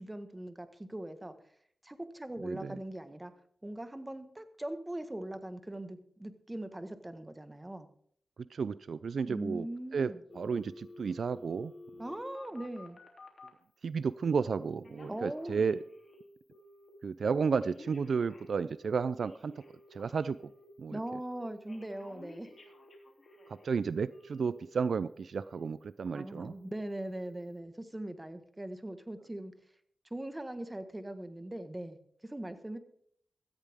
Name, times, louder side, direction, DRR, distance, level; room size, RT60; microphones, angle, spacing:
voice 1, 0.0-1.3 1.8-3.3 3.6-7.9 9.3-10.2 12.0-13.0 15.1-15.7 20.9-22.5 26.1-29.5 30.1-32.0 32.2-32.8, right 1 dB, 15° right, 9 dB, 1.5 m, -40 dB
voice 2, 2.4-2.8 8.4-9.7 9.9-11.7 13.8-15.8 17.0-19.5 19.9-20.5 20.8-21.0 23.5-26.5, right 5 dB, 70° right, 16 dB, 0.5 m, -32 dB
Telephone, 10.3-13.6 14.2-14.6 14.8-16.2 16.5-16.9 17.3-20.6 21.0-21.4 21.7-23.7 24.1-25.0 25.3-25.7 26.1-26.5 26.8-27.2 27.6-27.7, left 2 dB, 50° left, 3.0 m, -53 dB
16.5 x 13.5 x 3.6 m, 0.63 s
wide cardioid pair, 85°, 0 cm